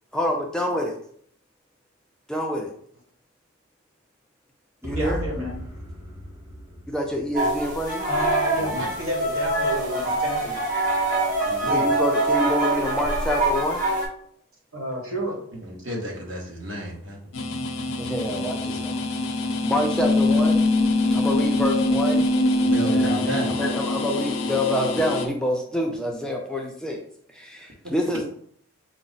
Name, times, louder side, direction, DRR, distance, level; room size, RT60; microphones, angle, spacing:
voice 1, 0.1-0.9 2.3-2.7 4.8-5.2 6.9-8.1 11.7-13.8 18.0-19.0 19.6-20.6 21.1-22.3 22.8-27.0 27.3-28.2, left 1 dB, 5° left, 0 dB, 0.3 m, -27 dB
sound 1, 4.8-8.7, equal, 10° right, 0.8 m, -37 dB
voice 2, 4.9-5.5 8.0-10.6 14.7-15.4 20.0-20.2, equal, 75° right, -2 dB, 1.4 m, -30 dB
sound 2, 7.3-14.1, right 2 dB, 40° right, 1.4 m, -24 dB
voice 3, 8.6-8.9 11.4-11.9 15.6-17.2 22.6-23.7, equal, 60° right, -2 dB, 1.2 m, -32 dB
sound 3, 17.3-25.3, left 2 dB, 60° left, 0.5 m, -23 dB
4.8 x 2.0 x 3.9 m, 0.64 s
head